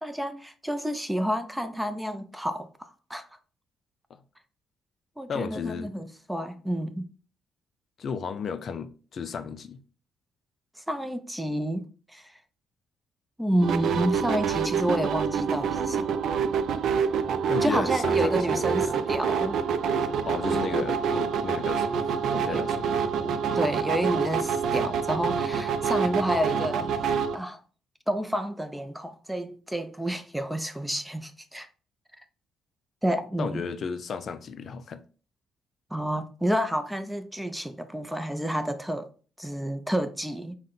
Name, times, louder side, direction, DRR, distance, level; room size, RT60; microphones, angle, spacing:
voice 1, 0.0-3.3 5.2-7.1 10.8-12.3 13.4-16.2 17.6-19.6 20.5-20.9 22.5-22.6 23.2-26.9 27.3-27.6 28.1-31.7 33.0-33.7 35.9-39.1 39.4-40.5, equal, 5° right, 0.5 m, -30 dB
voice 2, 5.3-5.9 8.0-9.8 17.5-19.0 20.2-22.9 33.4-35.0, left 6 dB, 55° left, 0.4 m, -34 dB
sound 1, 13.6-27.4, right 6 dB, 70° right, 0.4 m, -27 dB
5.5 x 2.1 x 3.9 m
cardioid pair, 90°, 0 cm